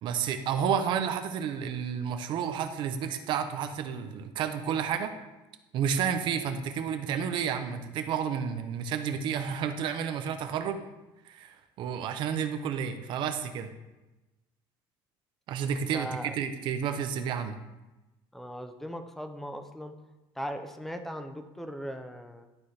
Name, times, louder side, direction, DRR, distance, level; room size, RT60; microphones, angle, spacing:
voice 1, 0.0-5.1 5.7-10.8 11.2-13.7 15.5-17.5, right 7 dB, 50° right, 8 dB, 0.7 m, -31 dB
voice 2, 15.9-16.4 18.3-20.0 20.4-22.5, equal, 5° left, 7 dB, 0.4 m, -38 dB
11.5 x 4.2 x 3.2 m, 1.1 s
cardioid pair, 170°, 10 cm